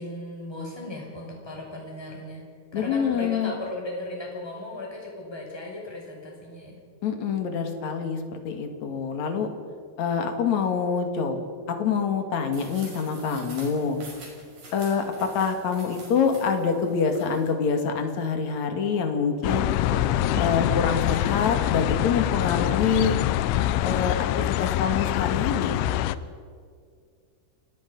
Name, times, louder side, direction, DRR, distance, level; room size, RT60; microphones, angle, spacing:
voice 1, 0.0-2.4 2.7-6.8, left 1 dB, 5° left, -2 dB, 5.8 m, -36 dB
voice 2, 2.7-3.5 7.0-9.5 10.0-11.4 11.7-14.0 14.7-19.6 20.4-23.2 23.8-25.9, left 6 dB, 50° left, 5 dB, 2.6 m, -26 dB
sound 1, 12.5-17.5, right 2 dB, 40° right, 6.7 m, -46 dB
sound 2, 18.3-18.4 19.8-20.6 20.9-21.3 21.5-21.7 24.7-24.8 25.0-25.3 25.5-25.7, right 4 dB, 85° right, 6.2 m, -41 dB
sound 3, 19.4-26.2, left 13 dB, 80° left, 2.9 m, -25 dB
29.5 x 21.0 x 5.4 m, 2.1 s
omnidirectional pair, 5.6 m